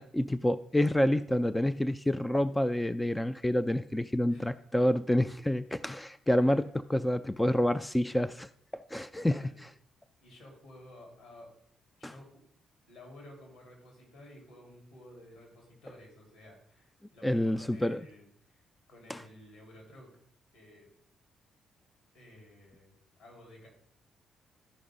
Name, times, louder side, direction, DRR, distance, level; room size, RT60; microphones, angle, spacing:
voice 1, 0.0-9.5 12.0-12.1 17.2-18.0 19.1-19.2, left 1 dB, 10° left, 13 dB, 0.3 m, -28 dB
voice 2, 6.3-6.7 9.2-9.7 10.2-11.5 12.0-12.3 12.9-18.6 18.9-20.1 20.5-20.9 22.1-23.7, left 1 dB, 70° left, -1 dB, 3.7 m, -53 dB
13.0 x 5.3 x 3.8 m, 0.68 s
hypercardioid pair, 40°, 0 cm